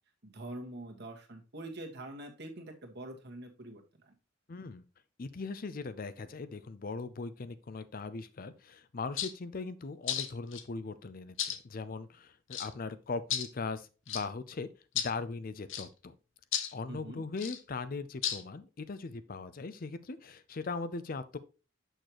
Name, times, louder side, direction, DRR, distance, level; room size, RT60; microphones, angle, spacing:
voice 1, 0.2-4.1 16.9-17.2, right 1 dB, 55° right, 1.6 m, -45 dB
voice 2, 4.5-4.8 5.2-14.7 14.9-16.1 16.7-21.4, left 4 dB, 45° left, 0.5 m, -39 dB
sound 1, 9.2-9.3 10.1-10.6 11.4-11.6 12.5-12.7 13.3-13.5 14.1-14.2 15.0-15.1 15.7-15.9 16.5-16.7 17.4-17.6 18.2-18.4, left 9 dB, 75° left, 0.9 m, -33 dB
6.6 x 6.4 x 3.0 m
head